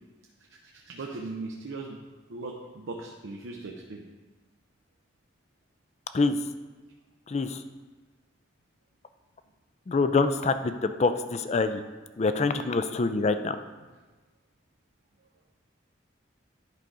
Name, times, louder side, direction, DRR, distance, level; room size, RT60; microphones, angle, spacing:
voice 1, 0.7-2.0 2.3-4.0, right 3 dB, 85° right, -1 dB, 0.7 m, -38 dB
voice 2, 7.3-7.6 9.9-11.8 12.2-13.6, left 3 dB, 35° left, 10 dB, 0.4 m, -25 dB
10.5 x 3.9 x 4.8 m, 1.3 s
head